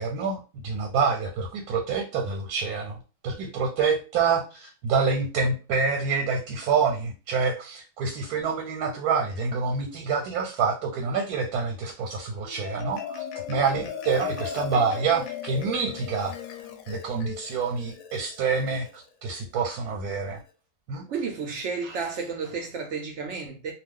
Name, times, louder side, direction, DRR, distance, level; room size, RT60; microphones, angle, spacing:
voice 1, 0.0-3.0 3.2-16.3 16.9-20.4 20.9-21.1, right 5 dB, 90° right, 1.1 m, -27 dB
Marimba xylophone, 12.3-19.0, left 8 dB, 70° left, 0.9 m, -37 dB
voice 2, 21.1-23.7, right 5 dB, 65° right, 0.7 m, -32 dB
2.3 x 2.3 x 3.6 m
omnidirectional pair, 1.6 m